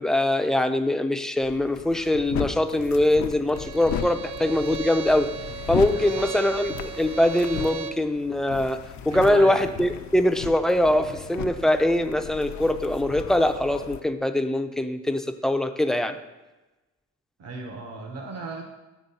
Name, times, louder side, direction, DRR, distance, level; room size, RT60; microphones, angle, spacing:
voice 1, 0.0-5.3 5.7-16.2, left 1 dB, ahead, 7 dB, 0.4 m, -23 dB
sound 1, 1.4-14.0, left 8 dB, 65° left, 0.5 m, -36 dB
Bowed string instrument, 3.5-8.1, right 9 dB, 80° right, 0.5 m, -36 dB
voice 2, 5.9-6.2 9.1-9.7 17.4-18.6, right 3 dB, 55° right, 2 dB, 0.9 m, -36 dB
8.5 x 3.6 x 5.4 m, 1.1 s
cardioid pair, 90°, 30 cm